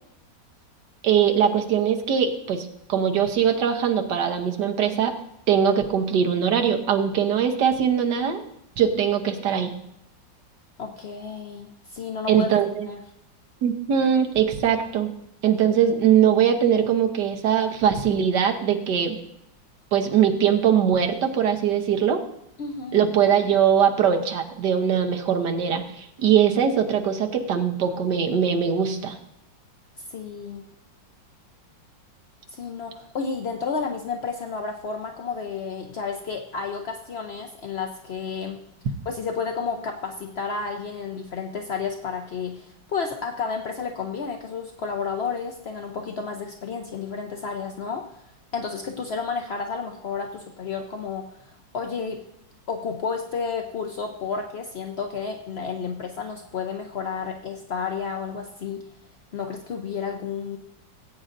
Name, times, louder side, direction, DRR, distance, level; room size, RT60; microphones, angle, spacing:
voice 1, 1.0-5.1 5.5-8.4 8.8-9.7 12.3-12.8 13.6-15.1 15.4-19.2 19.9-22.2 22.9-29.2, right 8 dB, 65° right, 4 dB, 1.5 m, -21 dB
voice 2, 10.8-12.5 12.9-13.0 22.6-23.0 30.1-30.6 32.5-38.6 39.1-48.2 48.5-52.2 52.7-58.8 59.3-60.6, left 5 dB, 75° left, 4 dB, 0.5 m, -31 dB
19.0 x 8.6 x 2.6 m, 0.79 s
omnidirectional pair, 2.0 m